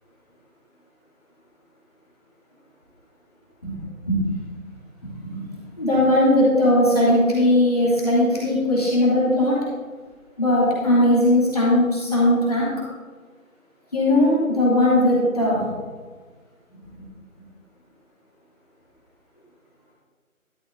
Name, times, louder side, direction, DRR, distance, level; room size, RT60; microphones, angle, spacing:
voice 1, 5.0-9.6 10.4-12.7 13.9-15.7 16.7-16.8, left 1 dB, 25° left, -8 dB, 2.8 m, -19 dB
12.5 x 11.0 x 2.7 m, 1.5 s
figure-of-eight pair, 180°, 42 cm